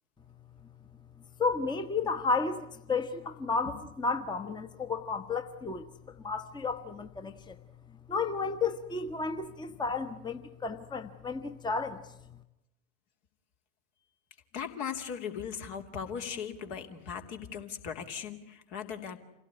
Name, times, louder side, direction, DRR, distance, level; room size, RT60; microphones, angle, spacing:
voice 1, 1.4-5.8 6.2-7.6 8.1-12.0, left 4 dB, 10° left, 8 dB, 1.2 m, -32 dB
voice 2, 14.5-19.2, left 7 dB, 55° left, 5 dB, 2.9 m, -38 dB
27.5 x 17.0 x 9.7 m, 0.89 s
figure-of-eight pair, 75°, 37 cm